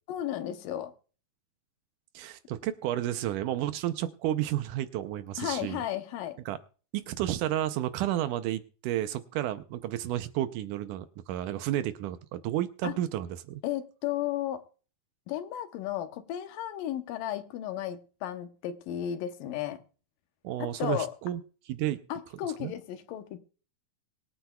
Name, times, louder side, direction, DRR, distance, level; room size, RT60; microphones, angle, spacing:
voice 1, 0.1-0.9 5.4-6.4 12.8-12.9 13.6-14.6 15.3-19.8 20.6-21.1 22.1-23.4, left 11 dB, 85° left, 2.6 m, -34 dB
voice 2, 2.1-5.8 6.5-6.6 6.9-13.6 20.4-21.4 21.7-22.0 22.6-22.7, right 13 dB, 75° right, 2.1 m, -31 dB
24.0 x 8.9 x 2.3 m
omnidirectional pair, 3.9 m